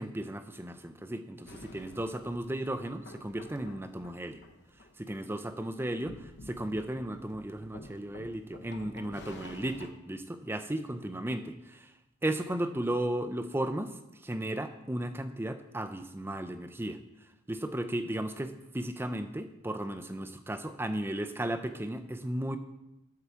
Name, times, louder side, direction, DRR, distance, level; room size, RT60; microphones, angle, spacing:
voice 1, 0.0-4.4 5.0-11.5 12.2-17.0 17.5-22.6, right 1 dB, 10° right, 9 dB, 0.4 m, -35 dB
sound 1, 1.5-9.9, left 2 dB, 50° left, 0.9 m, -51 dB
11.0 x 4.8 x 6.9 m, 0.93 s
head